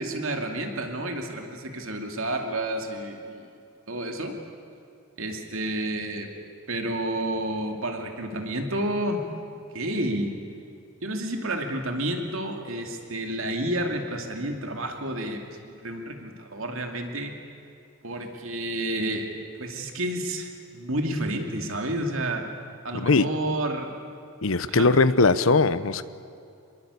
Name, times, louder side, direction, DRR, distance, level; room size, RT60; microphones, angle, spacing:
voice 1, 0.0-3.5 3.9-4.3 5.2-6.3 6.7-9.2 9.7-10.3 11.0-17.3 18.0-19.3 19.6-22.4 22.8-23.9 24.7-24.9, right 1 dB, 70° right, 4 dB, 2.5 m, -30 dB
voice 2, 22.9-23.3 24.4-26.0, left 3 dB, 70° left, 14 dB, 0.9 m, -20 dB
26.0 x 22.0 x 8.3 m, 2.6 s
head